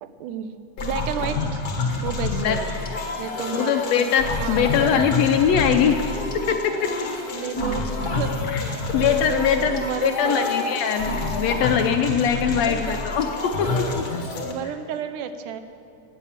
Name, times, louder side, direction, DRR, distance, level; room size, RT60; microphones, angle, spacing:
voice 1, 0.0-0.5 0.8-1.6 2.0-2.7 3.2-4.1 4.4-5.1 7.3-10.5 12.6-13.0 14.4-15.6, right 8 dB, 90° right, 10 dB, 2.3 m, -32 dB
sound 1, 0.8-14.5, left 3 dB, 45° left, 1.2 m, -28 dB
voice 2, 2.3-2.6 3.5-6.0 6.5-6.9 8.5-8.6 8.9-13.3 13.6-14.0, left 8 dB, 75° left, 6 dB, 1.6 m, -22 dB
16.5 x 9.0 x 7.3 m, 2.6 s
omnidirectional pair, 3.5 m